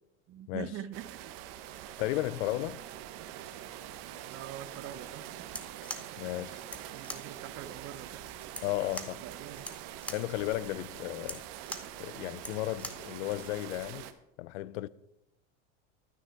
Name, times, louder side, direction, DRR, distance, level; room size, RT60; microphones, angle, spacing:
voice 1, 0.3-1.4 4.3-5.5 6.9-8.3 9.2-9.7, right 10 dB, 40° right, 0.7 m, -44 dB
sound 1, 0.9-14.1, right 12 dB, 55° right, 1.1 m, -45 dB
voice 2, 2.0-2.8 6.2-6.6 8.6-9.2 10.1-11.4 12.0-14.1 14.4-14.9, left 16 dB, 75° left, 0.5 m, -34 dB
sound 2, 5.4-13.1, left 1 dB, 5° left, 0.8 m, -44 dB
12.5 x 6.3 x 5.8 m
supercardioid pair, 105°, 36 cm